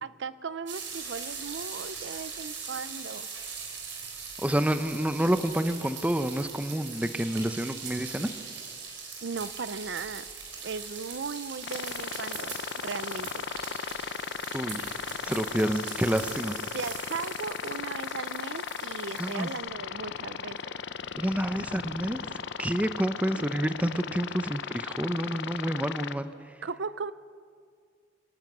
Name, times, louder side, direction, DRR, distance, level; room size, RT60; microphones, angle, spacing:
voice 1, 0.0-3.3 9.2-10.3 10.6-13.4 16.7-20.6 23.3-23.5 26.6-27.1, right 5 dB, 70° right, 15 dB, 0.6 m, -37 dB
sound 1, 0.7-19.6, right 5 dB, 90° right, 5.3 m, -41 dB
voice 2, 4.4-8.3 14.5-14.9 15.3-16.6 19.2-19.5 21.2-22.2 22.6-26.3, right 1 dB, 10° right, 10 dB, 0.8 m, -28 dB
sound 2, 11.6-26.1, left 6 dB, 70° left, 0.7 m, -37 dB
25.5 x 11.5 x 9.3 m, 2.1 s
head